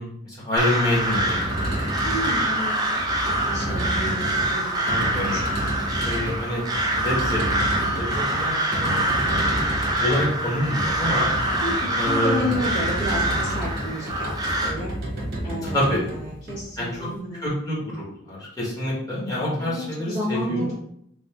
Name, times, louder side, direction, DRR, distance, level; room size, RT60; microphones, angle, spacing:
voice 1, 0.0-1.9 3.9-4.0 4.8-5.3 6.0-6.6 7.0-9.6 10.0-11.3 12.0-12.5 15.6-16.0 16.8-17.1 17.4-20.6, left 1 dB, 20° left, -6 dB, 1.3 m, -27 dB
Crow, 0.6-14.7, right 1 dB, 20° right, 0.5 m, -25 dB
sound 1, 1.1-17.1, right 1 dB, 55° right, 1.0 m, -31 dB
voice 2, 2.0-5.4 11.6-14.9 15.4-17.5 19.6-20.7, left 1 dB, 60° left, -11 dB, 1.5 m, -31 dB
3.4 x 2.6 x 3.4 m, 0.72 s
head